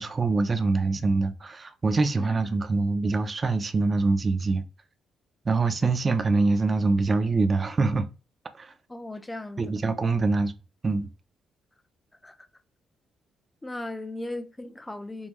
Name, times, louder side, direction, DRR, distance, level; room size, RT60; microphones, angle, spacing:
voice 1, 0.0-4.6 5.4-8.1 8.6-8.7 9.6-10.5 10.8-11.1, right 3 dB, 30° right, 0.6 m, -24 dB
voice 2, 8.9-9.8 12.2-12.5 13.6-15.3, left 2 dB, 15° left, 0.6 m, -37 dB
5.4 x 2.2 x 3.1 m
cardioid pair, 105°, 0 cm